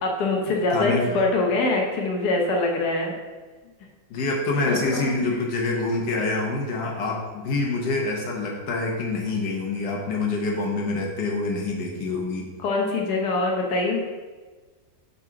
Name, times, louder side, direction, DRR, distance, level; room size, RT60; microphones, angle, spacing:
voice 1, 0.0-3.2 4.7-4.8 12.6-14.0, left 2 dB, 70° left, 0 dB, 1.5 m, -23 dB
voice 2, 0.5-1.1 4.1-12.5, left 3 dB, 85° left, 0 dB, 1.7 m, -26 dB
5.5 x 4.0 x 5.8 m, 1.3 s
omnidirectional pair, 1.8 m